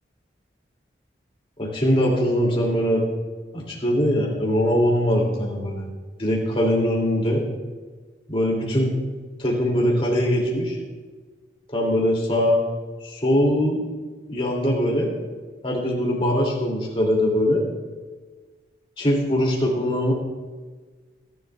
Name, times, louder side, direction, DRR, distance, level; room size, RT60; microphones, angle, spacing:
voice 1, 1.6-3.0 3.5-5.9 6.2-7.4 8.3-8.9 9.4-10.8 11.7-12.6 13.0-13.8 14.3-15.1 15.6-17.6 19.0-20.1, equal, 30° left, -2 dB, 2.7 m, -21 dB
21.5 x 11.0 x 2.4 m, 1.4 s
head